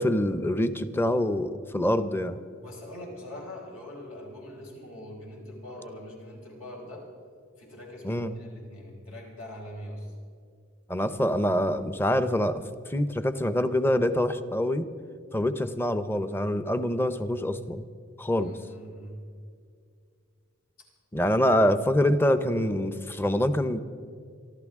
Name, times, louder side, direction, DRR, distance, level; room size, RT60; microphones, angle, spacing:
voice 1, 0.0-2.4 8.0-8.3 10.9-12.6 12.9-14.9 15.3-17.9 18.2-18.6 21.1-23.8, left 1 dB, 10° left, 11 dB, 0.6 m, -25 dB
voice 2, 2.6-7.0 7.6-10.1 18.3-19.2, left 1 dB, 85° left, -2 dB, 4.5 m, -42 dB
26.0 x 12.0 x 3.6 m, 2.2 s
head